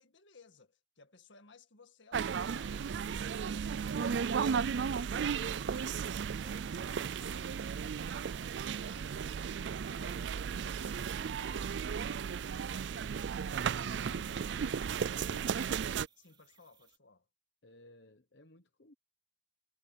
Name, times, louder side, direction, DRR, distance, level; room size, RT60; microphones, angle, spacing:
voice 1, 0.0-2.9 3.2-13.1 14.1-15.6 16.2-17.3, left 4 dB, 85° left, 1.9 m, -60 dB
sound 1, 2.1-16.1, right 6 dB, 70° right, 0.4 m, -35 dB
sound 2, 10.8-17.0, right 7 dB, 25° right, 4.1 m, -67 dB
voice 2, 13.8-16.0 17.6-18.9, left 2 dB, 65° left, 1.0 m, -59 dB
head